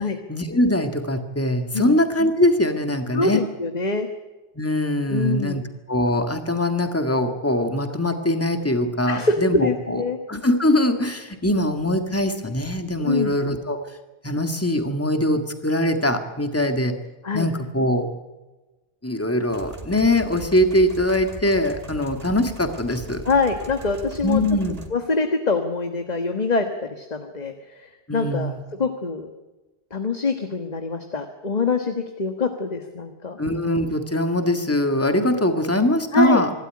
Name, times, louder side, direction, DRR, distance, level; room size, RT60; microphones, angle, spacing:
voice 1, 0.3-3.4 4.6-5.6 5.9-10.0 10.3-13.8 14.2-16.9 17.3-18.1 19.0-23.2 24.2-24.8 28.1-28.6 33.4-36.5, left 1 dB, 15° left, 7 dB, 1.9 m, -22 dB
voice 2, 3.1-4.1 5.1-5.6 9.1-10.2 13.0-13.3 17.2-17.5 23.2-24.4 24.9-29.3 29.9-33.4 36.1-36.4, left 3 dB, 40° left, 6 dB, 1.5 m, -24 dB
sound 1, 19.5-24.9, right 1 dB, 35° right, 2.5 m, -39 dB
25.5 x 13.0 x 9.7 m, 1.2 s
omnidirectional pair, 1.1 m